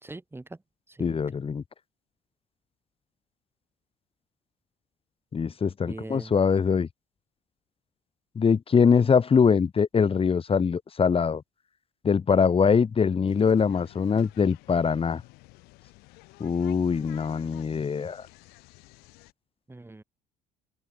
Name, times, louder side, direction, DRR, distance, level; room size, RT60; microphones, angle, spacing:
voice 1, 0.0-0.6 0.9-1.2 5.9-6.3 19.7-20.0, right 2 dB, 15° right, 3.7 m, -41 dB
voice 2, 1.0-1.6 5.3-6.9 8.4-11.4 12.0-15.2 16.4-18.3, left 6 dB, 35° left, 3.5 m, -23 dB
sound 1, 13.3-19.3, left 25 dB, 70° left, 7.9 m, -52 dB
open air
hypercardioid pair, 60°, 17 cm